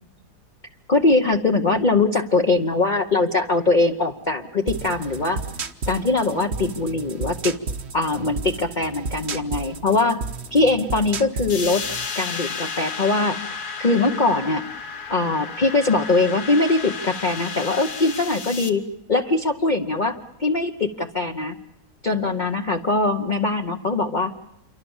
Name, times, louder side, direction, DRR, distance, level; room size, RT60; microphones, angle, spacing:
voice 1, 0.9-5.4 5.9-7.6 7.9-10.2 10.5-11.8 12.2-13.4 13.8-14.6 15.1-18.8 19.1-21.5 22.0-24.3, left 3 dB, 35° left, 3 dB, 1.0 m, -21 dB
sound 1, 4.7-12.1, right 4 dB, 45° right, 1.3 m, -32 dB
sound 2, 11.5-18.7, left 5 dB, 75° left, 2.0 m, -32 dB
27.5 x 24.0 x 7.2 m, 0.85 s
omnidirectional pair, 1.7 m